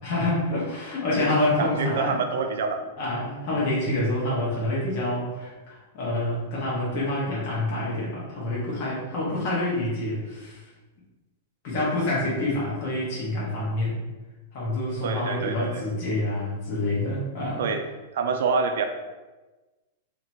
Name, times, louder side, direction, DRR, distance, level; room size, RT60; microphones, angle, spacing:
voice 1, 0.0-2.2 3.0-10.6 11.6-14.0 14.5-17.6, left 1 dB, 35° left, -6 dB, 1.3 m, -27 dB
voice 2, 1.6-2.8 3.5-3.6 15.0-15.8 17.6-17.8 18.1-18.8, right 5 dB, 60° right, 5 dB, 0.5 m, -26 dB
2.9 x 2.9 x 4.3 m, 1.2 s
supercardioid pair, 175°, 0 cm